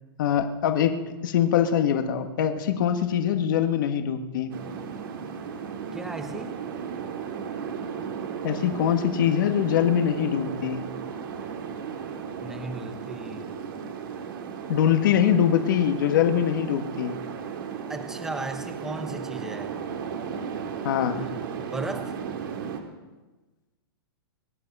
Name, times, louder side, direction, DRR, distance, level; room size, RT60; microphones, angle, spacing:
voice 1, 0.2-4.5 8.4-10.8 14.7-17.1 20.8-21.3, left 9 dB, 55° left, 7 dB, 1.5 m, -23 dB
sound 1, 4.5-22.8, right 6 dB, 60° right, 2.5 m, -35 dB
voice 2, 5.9-6.6 12.4-13.8 17.9-19.7 21.2-21.3 21.7-22.2, right 2 dB, 5° right, 7 dB, 0.9 m, -36 dB
23.5 x 10.5 x 5.5 m, 1.2 s
hypercardioid pair, 165°, 13 cm